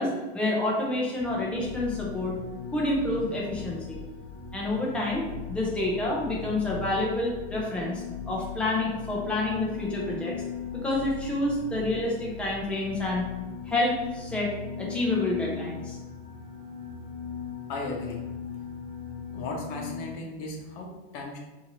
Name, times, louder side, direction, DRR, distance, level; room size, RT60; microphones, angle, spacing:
voice 1, 0.0-2.4 2.7-4.0 4.5-10.3 10.8-13.3 13.7-14.5 14.8-16.0, left 2 dB, 5° left, -4 dB, 0.5 m, -28 dB
sound 1, 1.2-20.1, left 7 dB, 45° right, 1.0 m, -38 dB
voice 2, 17.7-18.3 19.3-21.4, left 2 dB, 45° left, 0 dB, 0.9 m, -36 dB
4.2 x 2.7 x 2.9 m, 1.1 s
supercardioid pair, 155°, 31 cm